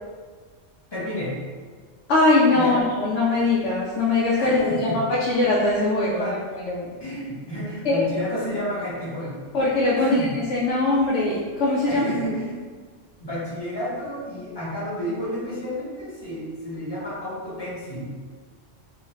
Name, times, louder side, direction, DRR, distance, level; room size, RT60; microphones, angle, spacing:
voice 1, 0.9-1.4 2.5-2.8 4.4-5.0 6.1-6.4 7.0-9.4 10.0-10.3 11.9-12.6 13.2-18.2, equal, 25° left, -10 dB, 1.0 m, -30 dB
voice 2, 2.1-4.9 5.3-6.3 6.7-6.9 7.8-8.0 9.5-10.2 10.5-12.1, left 2 dB, 80° left, -6 dB, 0.9 m, -21 dB
2.5 x 2.4 x 3.1 m, 1.5 s
omnidirectional pair, 1.2 m